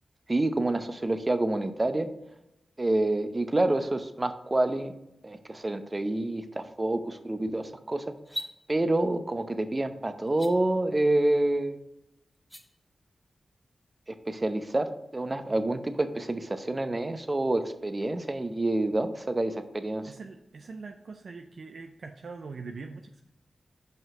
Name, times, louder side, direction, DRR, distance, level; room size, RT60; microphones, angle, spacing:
voice 1, 0.3-2.1 2.8-4.9 5.2-8.1 8.7-11.8 14.1-20.1, right 2 dB, 35° right, 9 dB, 0.7 m, -28 dB
sound 1, 8.2-8.5 10.3-10.5 12.3-12.6, equal, ahead, 1.6 m, -37 dB
voice 2, 20.0-23.3, right 4 dB, 75° right, 4 dB, 0.5 m, -42 dB
5.8 x 5.4 x 4.7 m, 0.87 s
cardioid pair, 45°, 0 cm